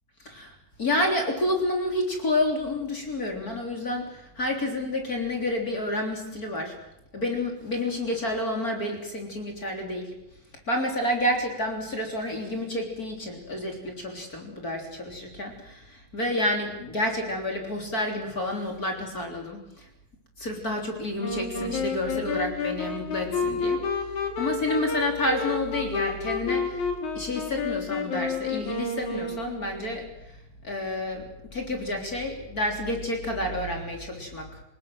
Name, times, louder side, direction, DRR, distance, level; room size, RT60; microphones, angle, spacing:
voice 1, 0.2-6.7 7.1-10.1 10.7-19.9 20.4-23.8 24.4-26.9 27.1-30.4 30.6-34.6, left 1 dB, 25° left, 2 dB, 3.6 m, -29 dB
Wind instrument woodwind instrument, 21.2-29.9, left 4 dB, 55° left, 4.0 m, -30 dB
27.0 x 19.0 x 7.8 m, 0.86 s
omnidirectional pair, 4.2 m